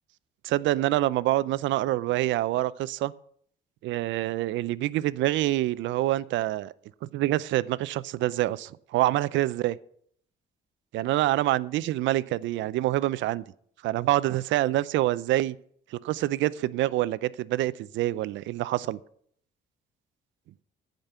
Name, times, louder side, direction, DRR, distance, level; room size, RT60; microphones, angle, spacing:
voice 1, 0.4-3.1 3.8-6.7 7.1-9.8 10.9-13.4 13.8-15.6 15.9-19.0, right 15 dB, 80° right, 18 dB, 0.5 m, -26 dB
15.0 x 5.2 x 8.0 m, 0.64 s
cardioid pair, 165°, 19 cm